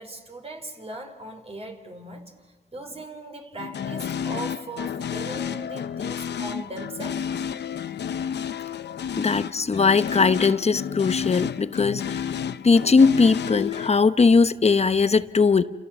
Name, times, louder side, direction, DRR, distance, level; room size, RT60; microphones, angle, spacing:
voice 1, 0.0-7.2 9.0-9.3, right 2 dB, 35° right, 3 dB, 4.1 m, -39 dB
sound 1, 3.6-13.9, left 8 dB, 80° left, 0.8 m, -31 dB
voice 2, 9.2-12.2 12.6-15.6, left 4 dB, 40° left, 12 dB, 0.9 m, -19 dB
30.0 x 28.0 x 7.1 m, 1.3 s
wide cardioid pair, 95°, 17 cm